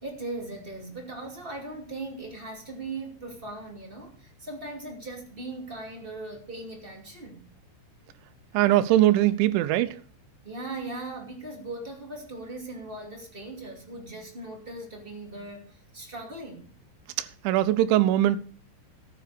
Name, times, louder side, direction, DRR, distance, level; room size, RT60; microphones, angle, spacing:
voice 1, 0.0-7.4 8.5-8.6 10.4-16.7, right 2 dB, 20° right, 1.6 m, -39 dB
voice 2, 8.5-9.9 17.2-18.4, right 14 dB, 90° right, 3.2 m, -21 dB
13.5 x 9.3 x 5.0 m
omnidirectional pair, 5.3 m